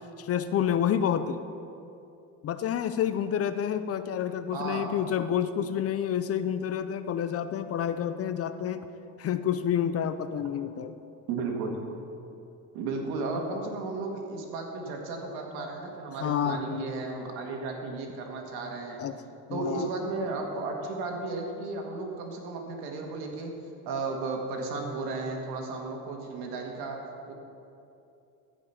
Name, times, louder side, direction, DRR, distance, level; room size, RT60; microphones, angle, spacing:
voice 1, 0.2-1.4 2.4-8.9 9.2-10.9 11.7-11.8 13.2-13.7 15.5-15.6 16.2-16.9 19.0-19.1 19.5-20.1, left 9 dB, 40° left, 11 dB, 0.5 m, -29 dB
voice 2, 4.5-4.9 11.3-11.7 12.7-19.0 19.5-23.5 23.9-27.0 27.3-27.4, right 3 dB, 75° right, 2 dB, 1.9 m, -34 dB
14.5 x 5.2 x 5.7 m, 2.8 s
supercardioid pair, 100°, 38 cm